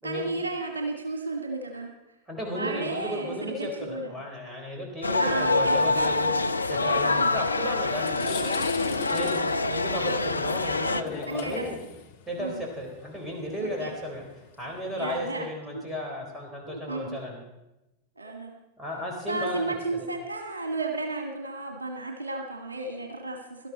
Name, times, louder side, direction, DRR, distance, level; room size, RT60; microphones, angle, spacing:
voice 1, 0.0-1.9 2.5-4.1 5.2-6.0 7.0-7.3 11.3-11.7 12.4-12.6 13.6-13.9 15.0-15.5 15.7-15.8 16.7-17.2 18.2-18.5 19.3-23.7, right 2 dB, 75° right, 3 dB, 1.6 m, -33 dB
voice 2, 2.3-6.3 6.7-8.6 9.1-11.8 12.3-14.2 14.6-17.4 18.8-20.1, equal, 10° right, -1 dB, 4.5 m, -34 dB
sound 1, 5.0-11.0, left 3 dB, 80° left, 0.5 m, -26 dB
sound 2, 8.0-15.2, left 8 dB, 55° left, 1.5 m, -40 dB
17.5 x 12.5 x 4.3 m, 0.95 s
figure-of-eight pair, 90°, 0 cm